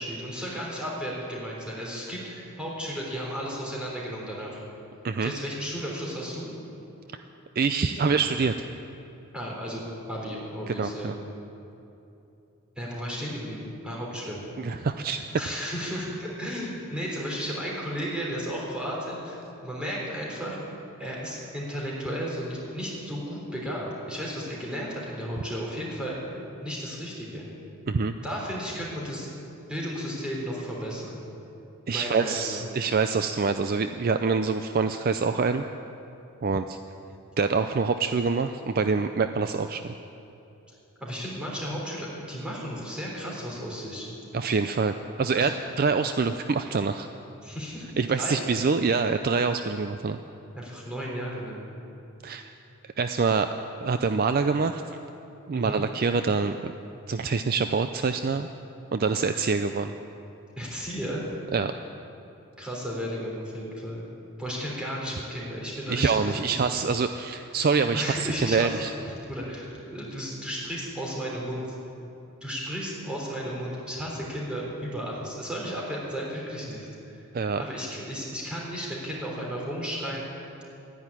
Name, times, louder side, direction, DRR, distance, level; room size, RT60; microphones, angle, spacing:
voice 1, 0.0-4.6 5.2-6.5 7.9-8.0 9.3-9.8 10.1-11.1 12.8-14.4 15.3-20.6 21.0-26.2 26.6-27.5 28.2-29.3 29.7-31.2 31.9-32.6 41.0-44.1 45.3-45.5 47.4-48.4 50.5-51.7 55.5-55.8 60.6-61.2 62.6-64.1 64.4-66.5 67.9-68.7 69.3-71.6 72.4-77.2 77.6-80.7, equal, 5° right, -4 dB, 3.7 m, -34 dB
voice 2, 7.6-8.7 10.8-11.2 14.6-15.3 27.9-28.1 31.9-35.6 36.4-36.8 37.4-39.9 44.3-47.1 48.0-50.2 52.2-52.5 53.0-55.0 55.5-56.7 57.1-58.5 58.9-59.9 61.5-61.7 65.9-68.9 77.3-77.6, right 4 dB, 40° right, 8 dB, 0.4 m, -25 dB
13.0 x 10.5 x 9.9 m, 2.9 s
head